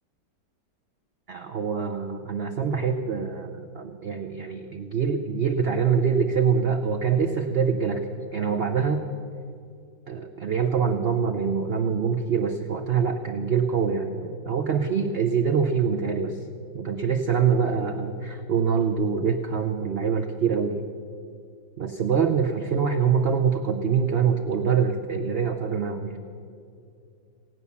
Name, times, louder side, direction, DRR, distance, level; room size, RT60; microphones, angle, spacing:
voice 1, 1.3-9.0 10.1-16.4 16.7-20.8 21.8-26.2, right 6 dB, 70° right, 4 dB, 0.5 m, -25 dB
17.0 x 9.4 x 7.0 m, 2.4 s
omnidirectional pair, 2.0 m